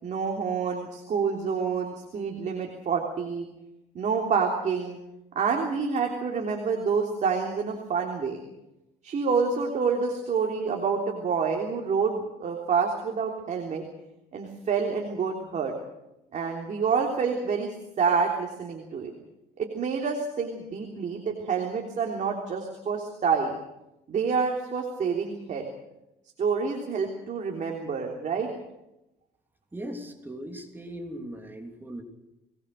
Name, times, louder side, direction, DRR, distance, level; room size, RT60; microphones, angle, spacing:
voice 1, 0.0-3.5 3.9-5.0 5.3-8.4 9.0-13.8 14.3-15.7 16.3-19.1 19.6-23.6 24.1-25.7 26.4-28.5, right 5 dB, 45° right, 1 dB, 3.4 m, -28 dB
voice 2, 29.7-32.0, right 1 dB, 10° right, 4 dB, 3.1 m, -39 dB
22.5 x 20.0 x 6.6 m, 0.90 s
cardioid pair, 110°, 17 cm